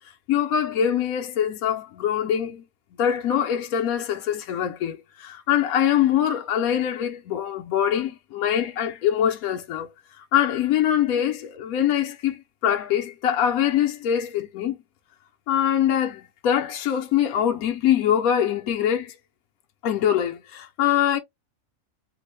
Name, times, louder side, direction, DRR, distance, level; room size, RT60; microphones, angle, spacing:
voice 1, 0.3-2.6 3.0-9.9 10.1-14.8 15.5-19.1 19.8-21.2, left 9 dB, 80° left, 1.2 m, -23 dB
3.4 x 2.1 x 3.1 m
omnidirectional pair, 1.5 m